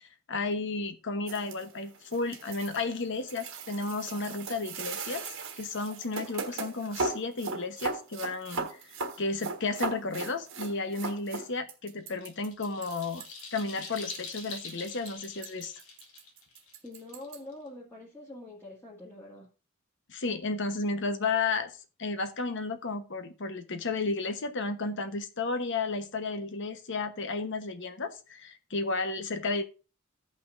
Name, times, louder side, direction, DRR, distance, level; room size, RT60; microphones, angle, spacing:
voice 1, 0.0-5.3 5.6-13.2 13.5-15.7 20.1-21.7 22.0-29.6, left 3 dB, 60° left, 1.1 m, -33 dB
sound 1, 1.3-17.4, right 3 dB, 65° right, 1.5 m, -38 dB
sound 2, 11.9-17.7, left 4 dB, 85° left, 2.0 m, -45 dB
voice 2, 16.8-19.5, left 2 dB, 10° left, 1.8 m, -45 dB
16.0 x 5.6 x 2.6 m
head